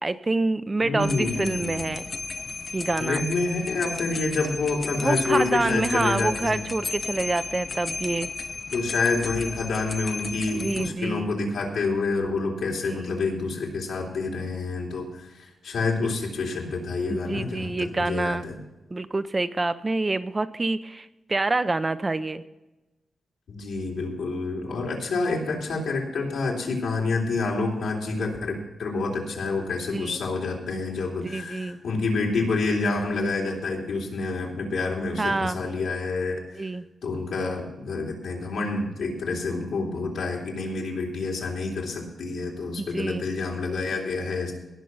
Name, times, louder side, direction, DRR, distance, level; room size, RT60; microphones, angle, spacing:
voice 1, 0.0-2.0 2.7-3.3 5.0-8.3 10.6-11.3 12.8-13.2 17.1-18.5 18.9-22.4 29.9-30.2 31.2-31.8 35.2-35.6 36.6-36.8 42.8-43.3, right 2 dB, 20° right, 12 dB, 0.5 m, -27 dB
voice 2, 0.8-1.9 3.0-6.6 8.7-18.6 23.5-36.4 37.0-44.5, left 3 dB, 85° left, -1 dB, 3.5 m, -28 dB
sound 1, 1.0-10.9, left 3 dB, 30° left, 0.4 m, -34 dB
18.5 x 6.3 x 5.5 m, 1.0 s
wide cardioid pair, 140°, 0 cm